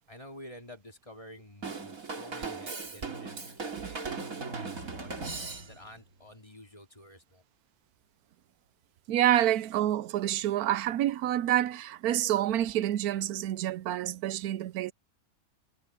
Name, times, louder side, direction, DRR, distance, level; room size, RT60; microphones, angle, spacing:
voice 1, 0.1-5.1 5.6-7.4, left 1 dB, 20° left, 3.7 m, -50 dB
Drum kit / Drum, 1.6-6.0, right 4 dB, 65° right, 3.2 m, -38 dB
voice 2, 9.1-14.9, right 12 dB, 85° right, 1.1 m, -28 dB
omnidirectional pair, 1.6 m